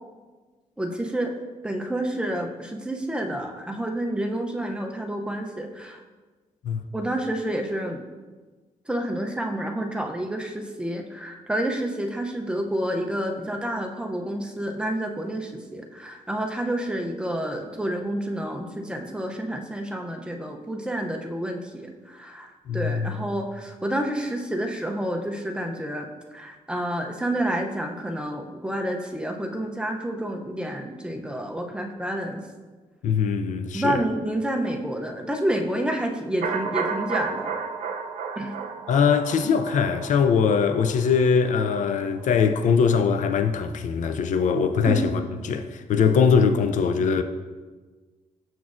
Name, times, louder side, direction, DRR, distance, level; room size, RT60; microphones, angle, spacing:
voice 1, 0.8-1.3 1.6-6.0 6.9-8.0 8.9-32.4 33.7-37.5 38.4-38.5 44.8-45.2, right 1 dB, 5° right, 0.5 m, -29 dB
voice 2, 22.7-23.1 33.0-34.0 38.9-47.2, left 6 dB, 70° left, 0.4 m, -22 dB
sound 1, 36.4-42.3 42.6-42.7, right 5 dB, 70° right, 0.5 m, -33 dB
7.0 x 6.1 x 2.5 m
cardioid pair, 120°, 13 cm